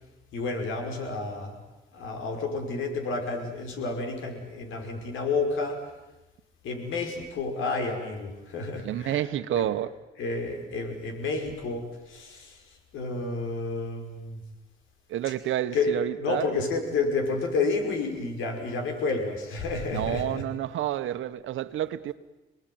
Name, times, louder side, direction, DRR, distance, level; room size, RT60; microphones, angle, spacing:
voice 1, 0.3-1.6 1.9-5.8 6.6-9.8 10.2-14.4 15.2-15.4 15.7-20.4, left 3 dB, 85° left, 5.6 m, -30 dB
voice 2, 8.8-9.9 15.1-16.5 19.9-22.1, right 12 dB, 80° right, 1.3 m, -29 dB
29.5 x 19.5 x 9.4 m
cardioid pair, 90°, 20 cm